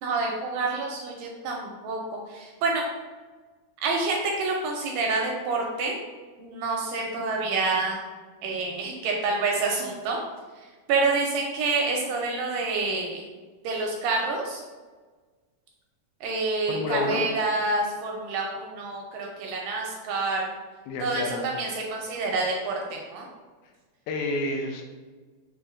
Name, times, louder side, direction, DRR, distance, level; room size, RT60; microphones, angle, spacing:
voice 1, 0.0-2.9 3.8-6.0 6.4-8.0 8.4-10.2 10.6-13.2 13.6-14.6 16.2-20.5 21.0-23.3, right 3 dB, 80° right, 0 dB, 2.0 m, -28 dB
voice 2, 16.7-17.2 20.9-21.5 24.1-24.8, left 2 dB, 85° left, 2 dB, 2.5 m, -29 dB
6.9 x 2.8 x 2.4 m, 1.4 s
omnidirectional pair, 4.3 m